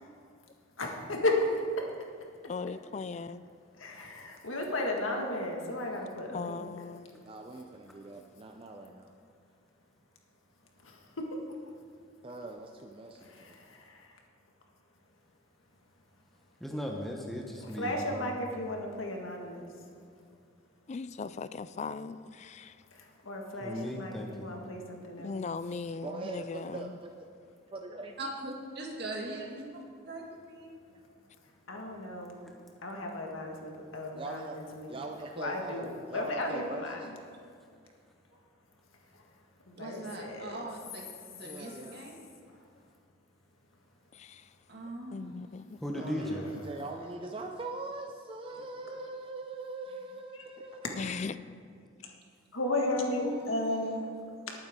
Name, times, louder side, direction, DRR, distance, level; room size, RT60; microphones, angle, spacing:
voice 1, 0.8-1.5 1.8-1.9 3.8-6.6 10.8-11.3 13.6-14.0 17.6-19.7 23.0-25.4 31.7-32.4 32.8-35.0 35.4-37.0 39.7-40.6 45.9-46.3 50.8-50.9 52.5-54.1, left 1 dB, 85° left, 1 dB, 1.8 m, -34 dB
voice 2, 2.4-3.4 6.3-7.1 20.9-22.7 25.2-26.9 44.1-44.4 45.1-45.8 50.9-51.3, left 4 dB, 35° left, 14 dB, 0.3 m, -38 dB
voice 3, 7.2-9.1 12.2-13.6 26.0-27.3 27.7-28.3 30.9-31.0 34.1-37.1 41.4-42.1 45.9-51.0, right 2 dB, 25° right, 3 dB, 0.5 m, -42 dB
voice 4, 16.6-18.3 23.6-24.5 45.8-46.5, equal, ahead, -1 dB, 0.9 m, -36 dB
voice 5, 28.2-29.7 30.1-30.7 39.8-42.2 44.7-45.3 53.2-53.7, right 2 dB, 55° right, -1 dB, 2.0 m, -41 dB
19.5 x 9.0 x 3.7 m, 2.3 s
head